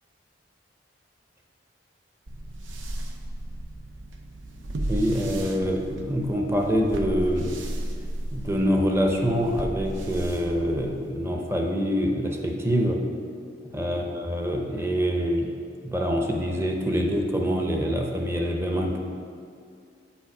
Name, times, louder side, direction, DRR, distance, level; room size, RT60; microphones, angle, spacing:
sound 1, 2.3-11.2, right 1 dB, 85° right, 0.7 m, -35 dB
voice 1, 4.9-7.6 8.3-13.0 13.6-15.6 15.8-19.0, equal, 15° right, 1 dB, 0.7 m, -25 dB
7.1 x 4.7 x 5.9 m, 2.3 s
head